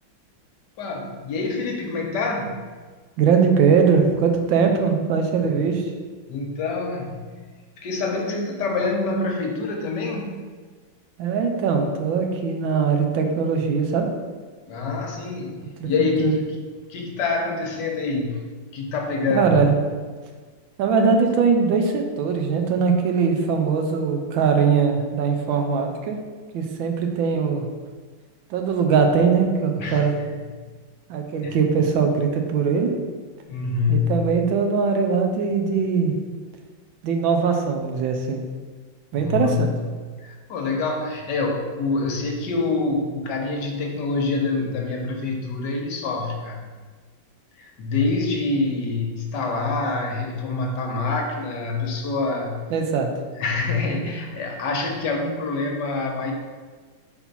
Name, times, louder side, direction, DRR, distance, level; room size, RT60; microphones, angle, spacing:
voice 1, 0.8-2.6 4.6-4.7 5.4-5.6 6.3-7.2 7.8-10.4 14.7-16.4 16.9-18.4 18.7-19.6 29.8-30.0 31.4-31.6 33.4-34.3 39.2-39.8 40.2-46.6 47.6-52.6 53.4-56.3, left 3 dB, 65° left, 1 dB, 1.3 m, -26 dB
voice 2, 3.2-5.9 11.2-14.1 15.8-15.9 16.2-16.4 19.3-19.7 20.8-26.2 26.5-27.7 28.5-30.1 31.1-32.9 33.9-36.2 37.0-38.4 39.1-39.7 52.7-53.1, right 5 dB, 80° right, 4 dB, 1.5 m, -21 dB
4.4 x 4.3 x 5.4 m, 1.5 s
omnidirectional pair, 2.1 m